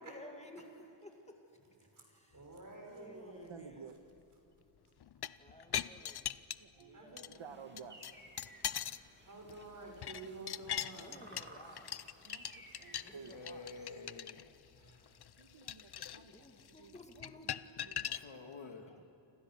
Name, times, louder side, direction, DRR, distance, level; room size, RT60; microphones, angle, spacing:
voice 1, 0.0-1.4 1.8-2.5 2.8-3.9 5.4-6.4 6.8-7.4 10.9-11.9 13.0-13.9 16.3-17.6 18.1-18.4, left 1 dB, 15° left, 2 dB, 2.2 m, -56 dB
voice 2, 2.3-3.5 6.9-7.4 9.3-11.2 14.8-15.0, right 2 dB, 40° right, 1 dB, 6.0 m, -50 dB
voice 3, 3.5-3.9 5.4-5.6 5.8-6.2 6.6-7.1 7.4-8.1 10.4-10.6 11.0-11.1 12.2-13.3 15.4-16.5 16.8-16.9 17.4-17.5 17.8-18.1 18.9-19.0, right 6 dB, 70° right, 7 dB, 1.5 m, -53 dB
sound 1, 5.0-6.8 7.2-7.4 7.8-9.1 9.4-18.2, left 10 dB, 55° left, 0.6 m, -41 dB
sound 2, 7.4-14.0, right 1 dB, 20° right, 2.5 m, -58 dB
voice 4, 13.3-14.5 18.0-18.9, left 3 dB, 75° left, 4 dB, 2.3 m, -49 dB
29.0 x 26.5 x 6.4 m, 2.9 s
wide cardioid pair, 150°, 48 cm